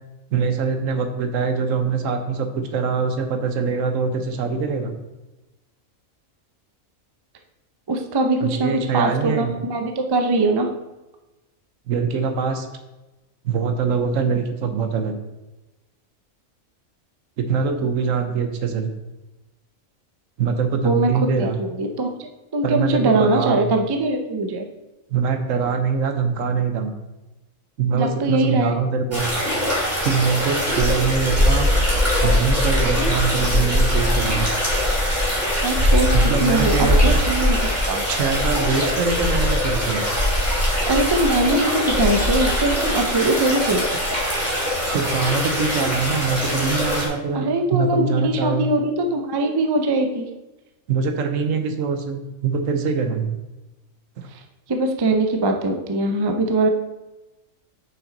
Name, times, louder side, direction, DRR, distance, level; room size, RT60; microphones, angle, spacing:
voice 1, 0.3-4.9 8.4-9.5 11.9-12.7 13.4-15.1 17.4-18.9 20.4-21.6 22.6-23.7 25.1-26.9 27.8-29.3 30.0-31.7 32.2-34.8 36.1-37.2 38.1-40.0 44.9-48.7 50.9-53.4 54.2-54.3, right 5 dB, 70° right, 7 dB, 1.1 m, -23 dB
voice 2, 7.9-10.7 20.8-21.1 21.4-22.1 22.5-24.7 27.9-28.8 35.6-36.7 37.3-37.6 37.8-38.0 40.9-43.8 47.3-50.3 54.3-54.4 54.7-56.7, right 2 dB, 35° right, 4 dB, 0.4 m, -21 dB
sound 1, 29.1-47.1, left 1 dB, 10° right, 2.5 m, -21 dB
6.2 x 5.9 x 3.9 m, 1.0 s
omnidirectional pair, 1.4 m